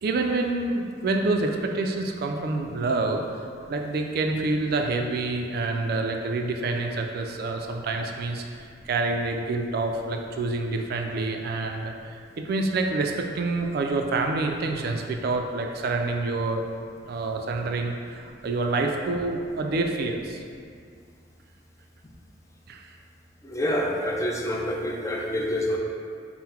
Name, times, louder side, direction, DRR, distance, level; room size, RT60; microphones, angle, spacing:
voice 1, 0.0-16.6 17.1-20.4 22.7-22.9, right 3 dB, 55° right, 3 dB, 0.3 m, -27 dB
voice 2, 23.4-25.8, equal, 15° left, -2 dB, 0.4 m, -27 dB
3.7 x 2.1 x 4.3 m, 2.2 s
head